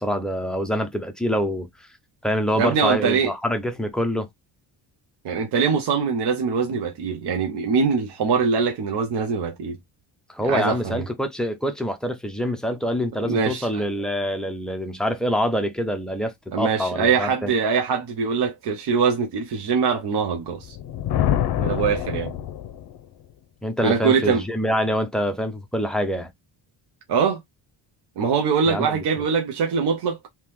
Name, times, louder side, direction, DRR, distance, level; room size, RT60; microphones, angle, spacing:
voice 1, 0.0-1.7 2.2-4.3 10.3-17.5 23.6-26.3 28.7-29.0, equal, ahead, 0.4 m, -25 dB
voice 2, 2.6-3.3 5.2-9.8 10.4-11.0 13.2-13.8 16.5-20.8 21.6-22.3 23.8-24.4 27.1-27.4 28.2-30.2, right 5 dB, 60° right, 0.8 m, -23 dB
Thunder, 20.6-23.0, left 11 dB, 55° left, 0.6 m, -25 dB
3.6 x 2.9 x 3.0 m
cardioid pair, 160°, 45 cm